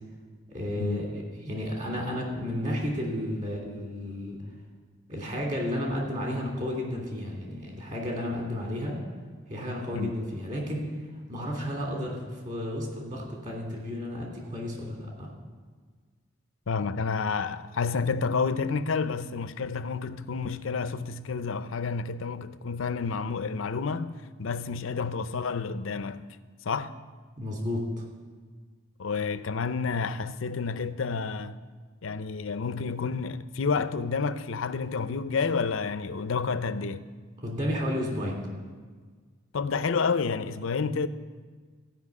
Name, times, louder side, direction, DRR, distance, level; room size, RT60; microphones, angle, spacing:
voice 1, 0.5-4.4 5.1-9.0 9.5-10.9 11.3-15.3 27.4-28.0 37.4-38.4, left 1 dB, 40° right, 2.8 m, -32 dB
voice 2, 16.7-24.1 24.4-26.2 26.6-26.9 29.0-31.6 32.0-37.1 39.5-41.1, left 5 dB, 75° left, 0.5 m, -29 dB
14.5 x 5.6 x 8.4 m
head